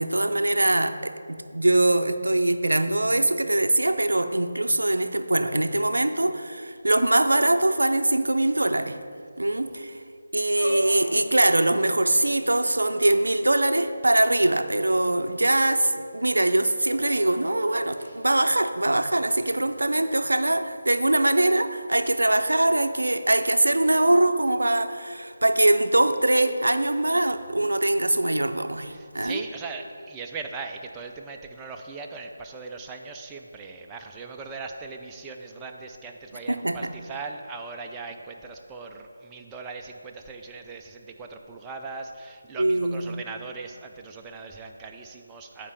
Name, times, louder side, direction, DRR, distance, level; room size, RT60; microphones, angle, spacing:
voice 1, 0.0-9.0 9.4-10.0 10.3-29.4 36.5-36.9 42.6-43.3, right 1 dB, 80° right, 9 dB, 0.5 m, -22 dB
sound 1, 10.6-11.1 11.5-12.2 12.8-13.7 14.5-15.5 16.8-18.2, left 1 dB, 35° left, 1.3 m, -39 dB
voice 2, 28.9-45.7, right 4 dB, 10° right, 2 dB, 0.4 m, -39 dB
10.0 x 4.5 x 4.7 m, 2.3 s
figure-of-eight pair, 160°, 0 cm